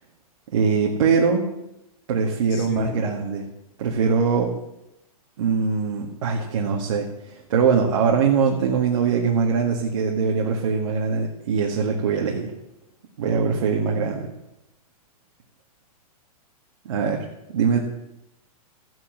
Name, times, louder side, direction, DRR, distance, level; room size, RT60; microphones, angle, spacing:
voice 1, 0.5-1.5 2.1-3.5 3.8-4.5 5.4-12.5 13.2-14.3 16.9-17.2 17.5-17.8, right 5 dB, 60° right, 2.0 m, -22 dB
voice 2, 2.5-3.2, left 5 dB, 30° left, 2.2 m, -33 dB
14.5 x 8.0 x 7.6 m
supercardioid pair, 165°, 19 cm